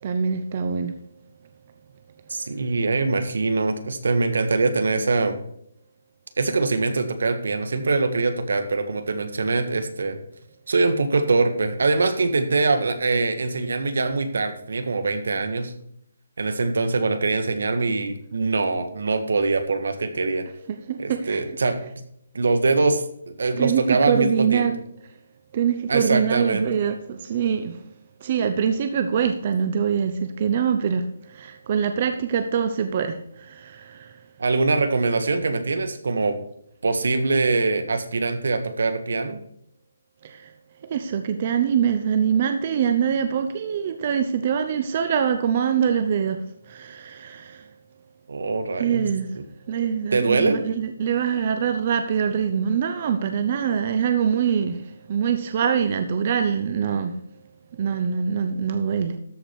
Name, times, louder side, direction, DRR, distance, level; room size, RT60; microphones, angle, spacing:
voice 1, 0.0-1.0 20.9-21.4 23.6-24.8 25.5-27.8 28.2-34.2 40.2-40.5 40.8-47.7 48.8-49.3 49.7-57.2 57.7-59.1, right 7 dB, 40° right, 7 dB, 0.8 m, -24 dB
voice 2, 2.3-5.4 6.4-10.2 10.7-15.7 16.4-20.4 21.0-21.8 22.3-24.7 25.9-26.7 34.4-36.4 36.8-39.4 48.3-49.1 49.3-49.4 50.1-50.6, right 3 dB, 75° right, 9 dB, 1.6 m, -23 dB
13.5 x 5.1 x 5.9 m, 0.73 s
hypercardioid pair, 160°, 0 cm